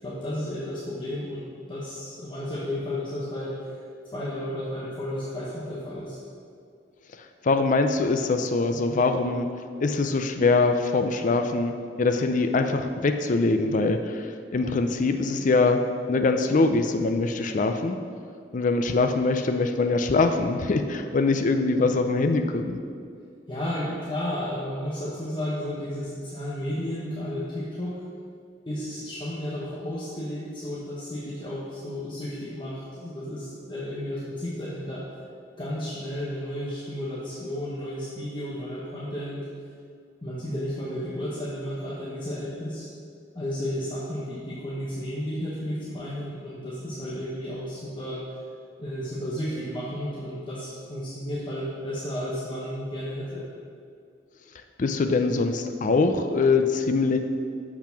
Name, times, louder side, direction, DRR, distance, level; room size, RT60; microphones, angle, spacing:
voice 1, 0.0-3.7 4.1-6.2 23.5-27.9 28.7-35.1 35.6-39.5 40.2-42.9 43.3-48.2 48.8-53.4, equal, 30° left, -7 dB, 1.1 m, -33 dB
voice 2, 7.4-9.5 9.8-15.8 16.1-18.0 18.5-22.8 54.8-57.2, left 3 dB, 45° left, 7 dB, 0.5 m, -23 dB
6.7 x 5.8 x 5.9 m, 2.3 s
head